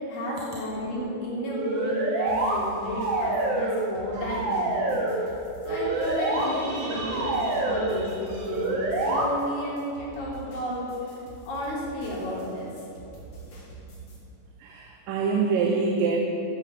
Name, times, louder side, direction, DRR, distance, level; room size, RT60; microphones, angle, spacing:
voice 1, 0.1-5.3 5.7-11.1 11.5-12.7, equal, 85° left, -7 dB, 5.2 m, -32 dB
sound 1, 1.5-2.6 2.9-3.9 4.1-5.2 5.6-6.5 6.9-7.9 8.5-9.2, right 2 dB, 70° right, 3.6 m, -27 dB
sound 2, 2.3-14.2, right 3 dB, 45° left, 3.3 m, -46 dB
voice 2, 5.9-8.4 14.6-16.2, right 4 dB, 90° right, 1 dB, 2.7 m, -29 dB
14.5 x 8.3 x 6.9 m, 2.9 s
omnidirectional pair, 3.8 m